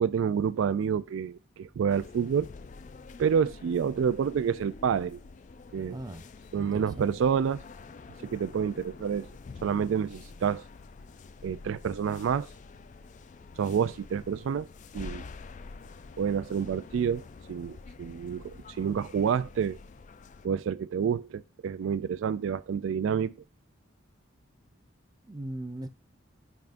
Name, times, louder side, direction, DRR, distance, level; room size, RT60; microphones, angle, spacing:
voice 1, 0.0-2.5 3.2-5.2 5.7-6.0 6.5-7.6 8.2-9.3 9.6-10.6 11.4-12.5 13.6-14.7 14.9-15.2 16.2-17.2 17.5-18.4 18.8-19.8 20.4-23.3, right 7 dB, 75° right, 0.3 m, -28 dB
sound 1, 1.9-20.5, left 4 dB, 40° left, 0.3 m, -47 dB
voice 2, 5.9-6.3 6.6-7.1 25.3-25.9, right 1 dB, 20° right, 0.5 m, -39 dB
10.5 x 3.6 x 2.5 m
head